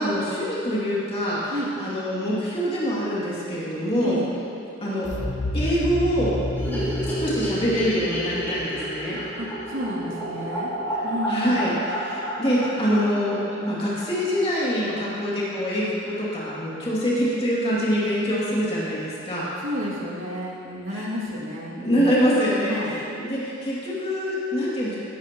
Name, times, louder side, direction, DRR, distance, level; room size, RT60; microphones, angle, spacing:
voice 1, 0.0-4.2 4.8-5.1 5.5-6.4 7.2-9.2 10.9-11.0 11.3-19.4 20.9-21.1 21.8-25.0, equal, 30° left, -8 dB, 2.6 m, -25 dB
voice 2, 4.0-4.3 6.7-6.9 9.4-10.7 11.0-11.7 19.6-22.1 22.7-23.0, equal, 70° right, -5 dB, 2.4 m, -31 dB
sound 1, 5.0-9.9, left 1 dB, 65° left, 1.0 m, -31 dB
sound 2, 6.6-14.8 15.0-15.1 15.4-15.5 15.7-15.8 16.1-16.6, equal, 10° left, 3.1 m, -31 dB
18.0 x 12.0 x 3.0 m, 2.7 s
head